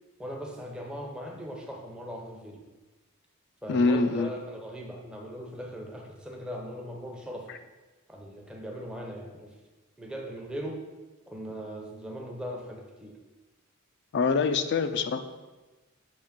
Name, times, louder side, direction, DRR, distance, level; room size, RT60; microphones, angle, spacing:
voice 1, 0.2-2.6 3.6-7.5 8.1-9.5 10.0-10.8 11.3-13.2, equal, 5° right, 0 dB, 0.7 m, -39 dB
voice 2, 3.7-4.3 14.1-15.2, left 4 dB, 50° left, 9 dB, 0.4 m, -25 dB
7.2 x 3.1 x 5.1 m, 1.2 s
head